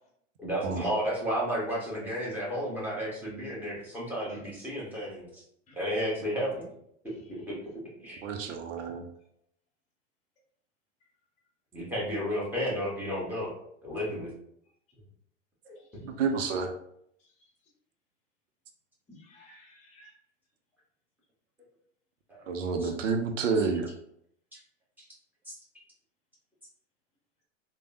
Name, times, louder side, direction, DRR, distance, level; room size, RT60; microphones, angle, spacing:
voice 1, 0.4-5.4 5.7-6.6 7.5-7.6 8.0-8.2 11.7-13.5 13.8-14.3 15.6-15.8 22.3-22.4 22.8-22.9 25.5-25.6, equal, 5° right, -6 dB, 1.3 m, -32 dB
voice 2, 7.1-7.6 15.7-16.1 17.2-17.3 19.1-20.1, left 1 dB, 20° left, -1 dB, 1.0 m, -57 dB
voice 3, 8.2-9.1 16.0-16.7 22.5-23.9, right 5 dB, 75° right, 5 dB, 0.6 m, -29 dB
3.3 x 2.2 x 2.6 m, 0.71 s
hypercardioid pair, 95°, 38 cm